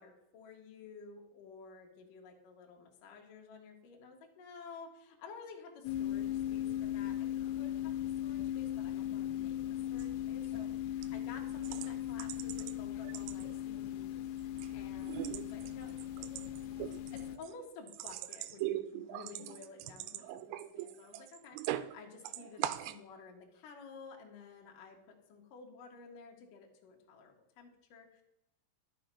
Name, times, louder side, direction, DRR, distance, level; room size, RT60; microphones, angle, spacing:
voice 1, 0.0-9.6 9.9-14.1 14.7-16.6 17.1-28.2, left 5 dB, 60° left, 1 dB, 2.3 m, -53 dB
sound 1, 5.9-17.4, left 11 dB, 85° left, 3.2 m, -38 dB
sound 2, 9.9-10.1 10.5-10.7 11.0-11.1 11.6-12.7 13.1-13.8 14.2-14.7 15.0-21.9 22.2-23.0, right 14 dB, 90° right, 3.3 m, -41 dB
11.5 x 7.2 x 5.5 m, 0.84 s
omnidirectional pair, 5.9 m